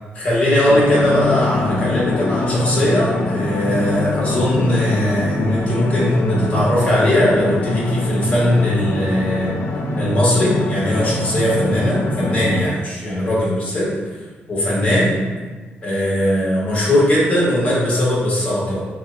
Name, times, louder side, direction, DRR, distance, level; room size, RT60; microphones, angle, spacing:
voice 1, 0.2-9.5 10.0-13.9 14.5-15.2 15.8-18.8, left 1 dB, 35° left, -6 dB, 1.4 m, -19 dB
sound 1, 0.7-12.6, left 2 dB, 80° left, 0.4 m, -23 dB
5.7 x 2.2 x 2.6 m, 1.3 s
cardioid pair, 115°, 4 cm